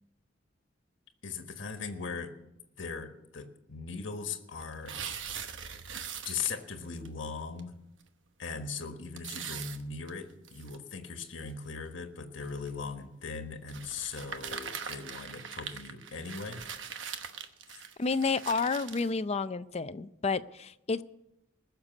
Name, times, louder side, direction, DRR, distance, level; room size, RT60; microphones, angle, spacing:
voice 1, 1.2-2.3 2.8-5.0 6.2-7.7 8.4-16.7, left 5 dB, 80° left, 6 dB, 1.4 m, -39 dB
sound 1, 4.6-6.7 7.0-7.1 7.6-7.7 8.0-8.1 9.2-10.8 11.4-11.5 12.4-12.7 13.7-19.1, right 7 dB, 80° right, 1.1 m, -41 dB
voice 2, 18.0-21.0, left 4 dB, 35° left, 13 dB, 0.5 m, -30 dB
20.0 x 6.7 x 8.2 m, 0.87 s
head